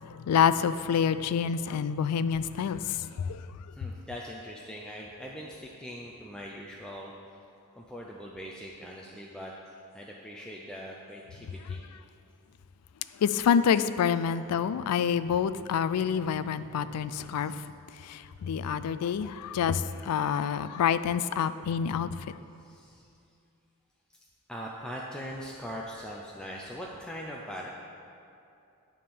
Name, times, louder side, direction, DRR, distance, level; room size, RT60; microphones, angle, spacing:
voice 1, 0.0-3.4 13.2-17.7 18.0-22.3, left 7 dB, 90° left, 14 dB, 0.3 m, -27 dB
voice 2, 3.7-7.1 7.8-9.5 9.9-11.8 17.4-17.6 22.6-23.1 24.5-27.7, equal, 5° left, -3 dB, 0.4 m, -41 dB
9.3 x 3.7 x 6.8 m, 2.6 s
head